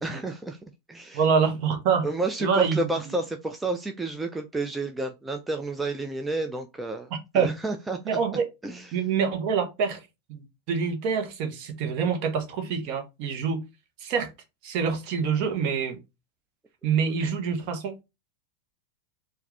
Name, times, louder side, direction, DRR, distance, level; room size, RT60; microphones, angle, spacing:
voice 1, 0.0-1.2 2.0-7.1 7.3-8.0 8.6-8.9, right 2 dB, 10° right, 0.4 m, -30 dB
voice 2, 1.1-2.1 2.4-3.2 7.1-7.6 8.0-8.5 8.9-10.0 10.3-13.6 14.0-14.3 14.6-16.0 16.8-18.0, right 6 dB, 45° right, 1.1 m, -26 dB
4.6 x 2.6 x 3.3 m
figure-of-eight pair, 90°, 0 cm